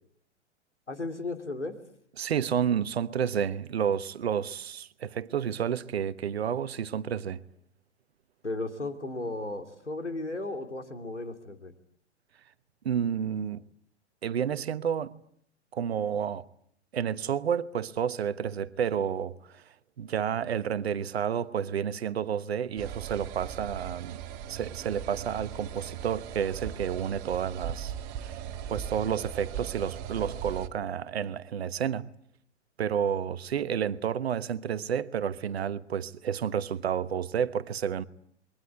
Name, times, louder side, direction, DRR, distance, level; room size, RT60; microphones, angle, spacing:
voice 1, 0.9-1.7 8.4-11.7, left 2 dB, 85° left, 2.8 m, -35 dB
voice 2, 2.2-7.4 12.8-13.6 14.2-15.1 15.7-16.5 16.9-19.6 20.0-24.2 24.5-32.1 32.8-38.0, right 8 dB, 60° right, 1.2 m, -30 dB
sound 1, 22.8-30.7, right 9 dB, 35° right, 1.7 m, -39 dB
28.5 x 22.5 x 8.3 m
figure-of-eight pair, 100°, 35 cm